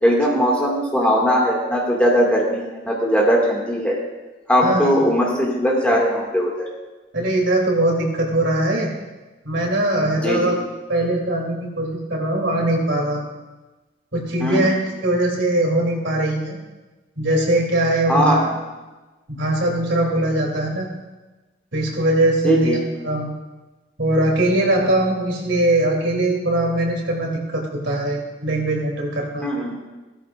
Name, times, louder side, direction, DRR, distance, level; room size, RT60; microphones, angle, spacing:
voice 1, 0.0-4.0 4.5-6.7 10.2-10.5 14.4-14.7 18.1-18.4 22.4-22.8 29.4-29.8, equal, 5° left, -3 dB, 2.0 m, -19 dB
voice 2, 4.6-4.9 7.1-8.9 9.4-10.6 10.9-13.3 14.1-16.6 17.2-18.5 19.3-20.9 21.7-22.8 23.0-23.3 24.0-29.5, right 1 dB, 70° right, -1 dB, 3.0 m, -21 dB
16.0 x 13.5 x 2.5 m, 1.2 s
head